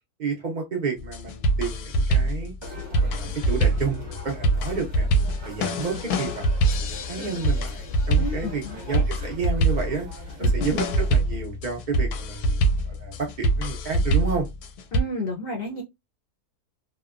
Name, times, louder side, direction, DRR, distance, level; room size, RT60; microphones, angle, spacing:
voice 1, 0.2-2.5 3.0-5.1 5.4-6.5 6.8-10.1 10.4-14.5, right 5 dB, 80° right, 0.4 m, -31 dB
sound 1, 1.0-15.0, right 2 dB, 85° left, 1.1 m, -24 dB
sound 2, 2.6-11.2, left 3 dB, 35° right, 0.8 m, -40 dB
voice 2, 8.2-9.0 10.4-10.8 14.9-15.8, left 1 dB, 65° left, 0.6 m, -32 dB
2.8 x 2.1 x 2.3 m
omnidirectional pair, 1.6 m